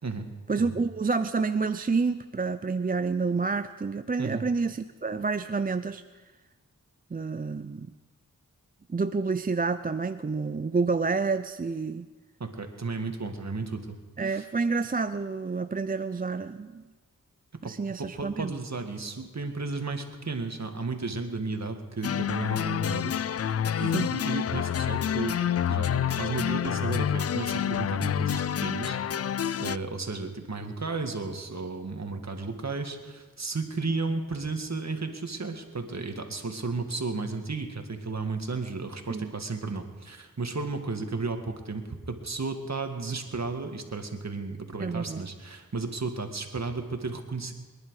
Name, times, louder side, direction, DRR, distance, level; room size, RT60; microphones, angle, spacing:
voice 1, 0.5-6.0 7.1-7.9 8.9-12.1 14.2-16.8 17.6-18.5 23.8-24.1 39.1-39.3 44.8-45.3, right 4 dB, 25° right, 11 dB, 0.5 m, -29 dB
voice 2, 12.4-14.0 14.2-14.5 17.6-17.7 18.0-23.1 23.5-25.4 25.7-47.5, right 3 dB, 50° right, 5 dB, 2.0 m, -34 dB
sound 1, 22.0-29.8, left 9 dB, 45° left, 0.4 m, -28 dB
23.5 x 10.5 x 4.9 m, 1.3 s
cardioid pair, 40°, 33 cm